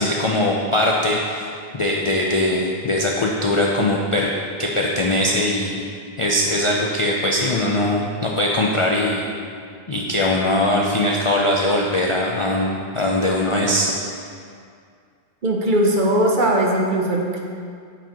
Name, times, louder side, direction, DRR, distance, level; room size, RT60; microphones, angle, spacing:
voice 1, 0.0-1.5 1.7-4.3 4.6-5.8 6.2-9.2 9.9-13.9, left 1 dB, 50° left, -2 dB, 0.4 m, -21 dB
voice 2, 15.4-17.4, right 1 dB, 50° right, 0 dB, 0.8 m, -19 dB
8.7 x 5.0 x 2.9 m, 2.3 s
omnidirectional pair, 1.1 m